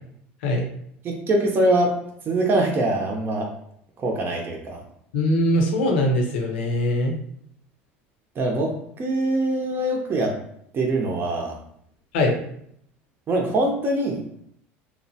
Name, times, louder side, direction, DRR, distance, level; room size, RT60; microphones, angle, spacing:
voice 1, 1.0-1.9 2.3-3.5 4.0-4.8 8.4-10.4 10.7-11.6 13.3-14.2, right 1 dB, 35° right, 1 dB, 0.6 m, -23 dB
voice 2, 5.1-7.2 12.1-12.4, left 1 dB, 85° left, 1 dB, 0.7 m, -21 dB
3.0 x 2.1 x 2.7 m, 0.68 s
hypercardioid pair, 90°, 6 cm